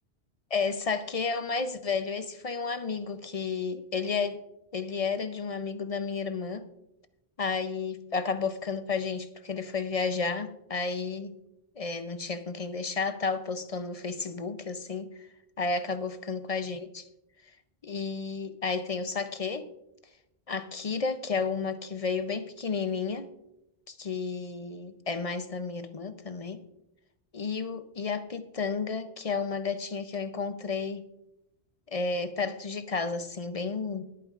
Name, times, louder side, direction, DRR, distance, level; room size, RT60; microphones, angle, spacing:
voice 1, 0.5-4.4 4.7-6.6 7.4-11.4 11.8-15.1 15.6-17.0 17.8-19.7 20.5-23.3 23.9-26.6 27.3-31.0 31.9-34.0, left 4 dB, 45° left, 10 dB, 0.5 m, -32 dB
21.0 x 9.0 x 2.4 m, 0.88 s
omnidirectional pair, 1.2 m